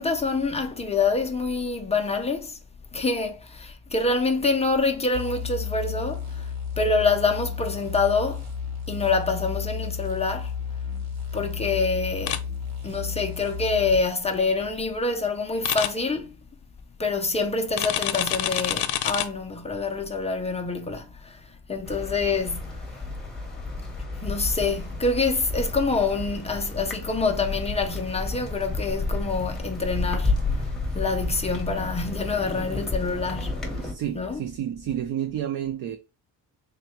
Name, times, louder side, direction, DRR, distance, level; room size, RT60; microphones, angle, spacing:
voice 1, 0.0-2.6 2.9-6.5 6.8-8.5 8.9-10.5 11.3-12.5 12.8-16.4 17.0-22.9 24.1-30.7 30.9-33.8 34.1-34.4, left 3 dB, 20° left, 0.3 m, -26 dB
sound 1, 5.1-14.1, left 7 dB, 45° right, 1.0 m, -33 dB
sound 2, 12.3-12.4 15.6-15.9 17.8-19.3, left 12 dB, 85° left, 0.6 m, -26 dB
sound 3, 21.9-33.9, left 2 dB, ahead, 0.8 m, -31 dB
voice 2, 33.8-36.0, right 10 dB, 60° right, 0.5 m, -30 dB
3.6 x 2.1 x 4.2 m
cardioid pair, 160°, 38 cm